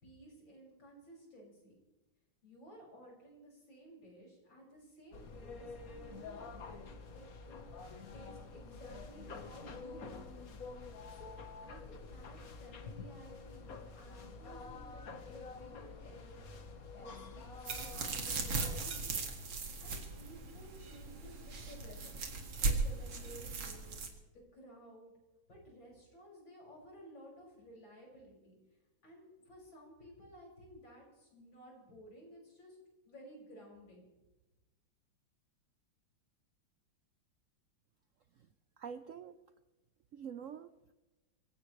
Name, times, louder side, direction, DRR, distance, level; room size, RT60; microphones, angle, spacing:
voice 1, 0.0-1.8 2.4-10.5 11.1-11.3 11.6-16.5 16.9-19.2 19.8-22.2 22.6-24.0 24.3-25.1 25.5-28.6 29.0-32.8 33.0-34.1, equal, 75° left, -2 dB, 6.9 m, -56 dB
sound 1, 5.1-18.8, left 4 dB, 50° left, 1.6 m, -48 dB
sound 2, 17.6-24.1, right 3 dB, 85° right, 2.9 m, -38 dB
voice 2, 38.8-39.5 40.1-40.9, right 7 dB, 65° right, 11 dB, 0.8 m, -46 dB
25.0 x 17.0 x 3.2 m, 1.1 s
omnidirectional pair, 2.1 m